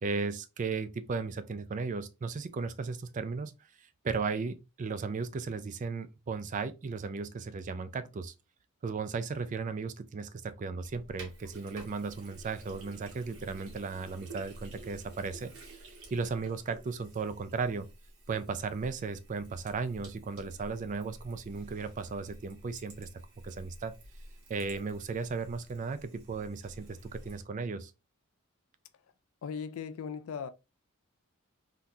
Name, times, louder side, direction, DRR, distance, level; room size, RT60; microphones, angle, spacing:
voice 1, 0.0-3.5 3.8-8.3 8.8-17.9 18.3-23.1 23.4-23.9 24.5-27.9, right 4 dB, 35° right, 0.3 m, -36 dB
Sink (filling or washing), 10.8-27.4, right 1 dB, 70° right, 1.4 m, -51 dB
voice 2, 29.4-30.5, left 6 dB, 70° left, 0.4 m, -38 dB
3.8 x 2.3 x 2.7 m
head